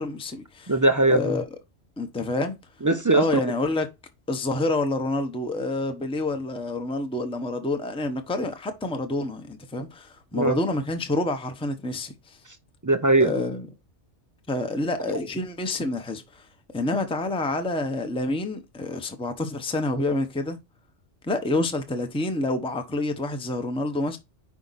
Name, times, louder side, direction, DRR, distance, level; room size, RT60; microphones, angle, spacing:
voice 1, 0.0-0.7 1.1-1.4 2.0-2.6 3.1-3.9 4.3-12.4 13.2-13.7 14.5-16.5 16.7-20.6 21.2-24.2, left 2 dB, 5° left, 0.8 m, -28 dB
voice 2, 0.7-1.4 2.8-3.4 10.3-10.6 12.8-13.3 15.1-15.2, right 2 dB, 30° right, 0.3 m, -20 dB
5.2 x 4.8 x 4.0 m
omnidirectional pair, 1.2 m